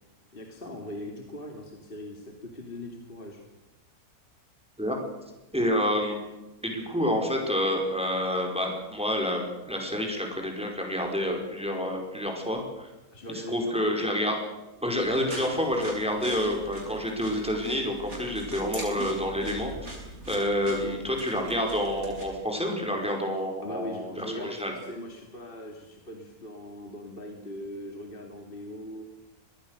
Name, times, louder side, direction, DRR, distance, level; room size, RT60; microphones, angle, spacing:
voice 1, 0.3-3.4 13.1-14.1 20.8-21.0 23.6-29.0, left 1 dB, 35° left, 2 dB, 2.8 m, -40 dB
voice 2, 5.5-6.2 6.6-12.9 13.5-14.3 14.8-19.7 20.3-24.7, equal, 5° right, 2 dB, 5.2 m, -28 dB
sound 1, 15.0-22.2, equal, 70° right, 7.4 m, -41 dB
24.0 x 20.5 x 6.7 m, 1.0 s
omnidirectional pair, 1.6 m